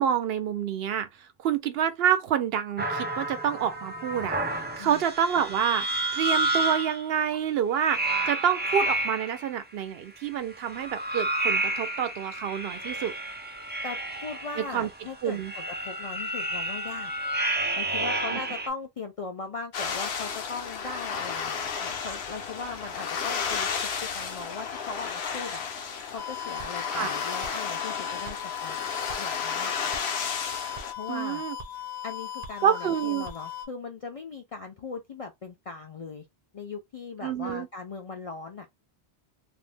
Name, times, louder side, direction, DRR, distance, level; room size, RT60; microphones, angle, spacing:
voice 1, 0.0-5.9 6.1-13.1 14.7-14.9 15.2-15.5 18.3-18.4 26.9-27.1 31.1-31.6 32.6-33.3 37.2-37.7, right 9 dB, 70° right, 0.8 m, -28 dB
sound 1, 2.8-7.1 7.8-9.5 10.5-18.7, right 2 dB, 15° right, 0.4 m, -30 dB
voice 2, 13.8-17.1 17.8-25.6 26.1-28.9 29.2-30.0 30.9-31.4 32.0-36.2 36.5-38.7, left 4 dB, 55° left, 0.4 m, -39 dB
sound 2, 19.7-30.9, left 6 dB, 80° left, 0.9 m, -33 dB
sound 3, 26.2-33.7, left 9 dB, 45° right, 0.7 m, -38 dB
2.5 x 2.0 x 3.2 m
omnidirectional pair, 1.1 m